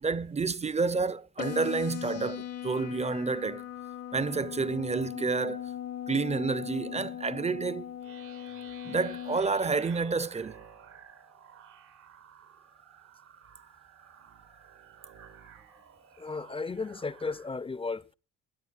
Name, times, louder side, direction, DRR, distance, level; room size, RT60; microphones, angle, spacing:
voice 1, 0.0-3.6 4.1-5.6 6.1-7.9 8.8-10.5, right 4 dB, 20° right, 0.7 m, -29 dB
sound 1, 1.4-9.4, left 11 dB, 55° left, 1.1 m, -39 dB
sound 2, 8.0-17.5, right 8 dB, 85° right, 2.6 m, -53 dB
voice 2, 16.2-18.1, left 4 dB, 20° left, 0.7 m, -34 dB
26.0 x 9.4 x 2.5 m
cardioid pair, 90°, 30 cm